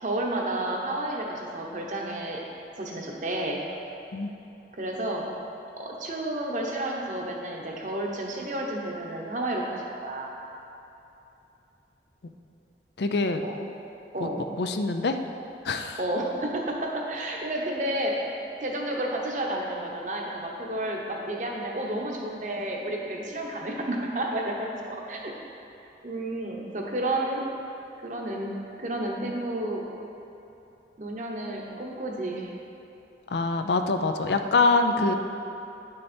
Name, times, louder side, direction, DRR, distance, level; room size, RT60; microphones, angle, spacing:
voice 1, 0.0-2.4 2.8-3.6 4.8-5.2 5.8-9.7 10.0-10.3 13.4-13.5 14.1-14.4 16.0-18.3 18.6-25.3 26.0-27.5 28.0-28.5 28.8-29.8 31.0-32.5 35.0-35.1, right 1 dB, 45° right, -1 dB, 1.0 m, -31 dB
voice 2, 13.0-13.4 14.6-15.2 15.6-16.0 33.3-35.1, left 3 dB, 70° left, 7 dB, 0.5 m, -24 dB
9.6 x 6.5 x 4.4 m, 2.9 s
head